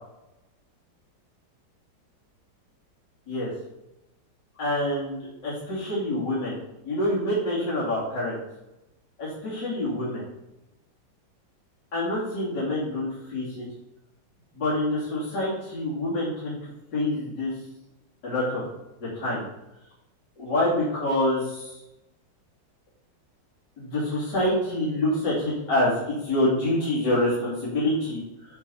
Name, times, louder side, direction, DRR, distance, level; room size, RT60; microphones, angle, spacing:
voice 1, 4.6-6.6 6.8-8.4 9.2-10.2 11.9-13.6 14.5-17.5 18.2-18.6 19.0-19.4 20.4-21.7 23.8-28.2, left 1 dB, 65° left, -9 dB, 3.5 m, -26 dB
7.4 x 6.5 x 5.5 m, 0.93 s
omnidirectional pair, 2.0 m